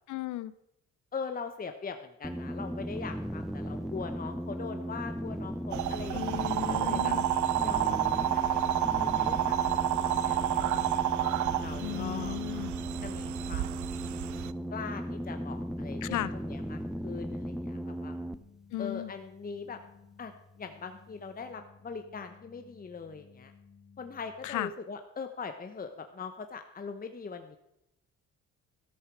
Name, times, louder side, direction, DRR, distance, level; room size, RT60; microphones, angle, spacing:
voice 1, 0.1-0.5 6.1-7.3 11.8-12.7 16.0-16.3 18.7-19.1 24.4-24.7, left 15 dB, 80° left, 17 dB, 0.7 m, -35 dB
voice 2, 1.1-7.2 7.6-9.9 10.2-10.7 11.6-12.4 13.0-13.7 14.7-18.2 18.8-19.8 20.2-23.5 24.0-27.6, left 5 dB, 30° left, 7 dB, 1.0 m, -41 dB
sound 1, 2.2-18.4, equal, ahead, 0.7 m, -37 dB
sound 2, 5.7-24.6, left 5 dB, 50° left, 2.4 m, -57 dB
sound 3, 5.7-14.5, right 12 dB, 70° right, 0.6 m, -30 dB
13.0 x 13.0 x 4.7 m, 0.82 s
cardioid pair, 90°, 30 cm